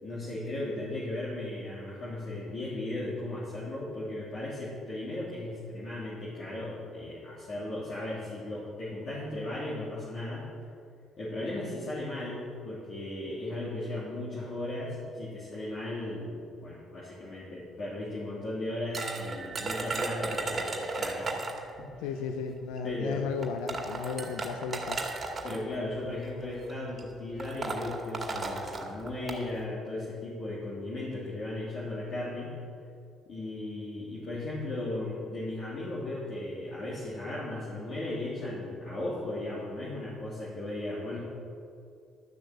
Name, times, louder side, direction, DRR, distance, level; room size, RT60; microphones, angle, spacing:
voice 1, 0.0-10.4 11.2-21.4 21.8-22.1 22.8-23.3 25.4-32.5 33.3-41.2, left 1 dB, 55° left, -8 dB, 3.2 m, -36 dB
sound 1, 18.9-21.7 22.8-22.9 23.4-25.6 26.5-26.7 27.0-27.1 27.4-29.4, right 3 dB, 35° right, 2.0 m, -34 dB
voice 2, 22.0-25.1, left 6 dB, 85° left, 6 dB, 0.6 m, -34 dB
12.0 x 6.6 x 7.7 m, 2.4 s
supercardioid pair, 75°, 0 cm